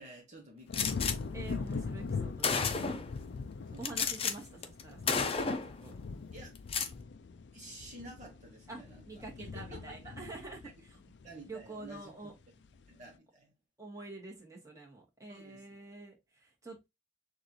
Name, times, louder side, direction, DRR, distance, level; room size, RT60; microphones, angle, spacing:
voice 1, 0.0-1.3 2.9-3.2 3.7-3.9 6.3-6.5 7.5-10.1 11.2-12.3 12.9-13.5 15.3-15.6, right 1 dB, 45° right, 1.3 m, -51 dB
sound 1, 0.7-12.0 12.4-12.9, left 4 dB, 75° left, 0.4 m, -41 dB
Gunshot gunfire, 0.7-1.2 2.0-2.1 2.4-3.1 3.8-4.3 4.6-4.8 5.1-5.7 6.6-6.9, left 5 dB, 35° left, 0.7 m, -31 dB
voice 2, 1.3-2.9 3.8-5.9 8.7-11.0 11.5-12.3 13.8-16.9, right 2 dB, 20° right, 1.6 m, -47 dB
6.4 x 2.6 x 3.0 m
head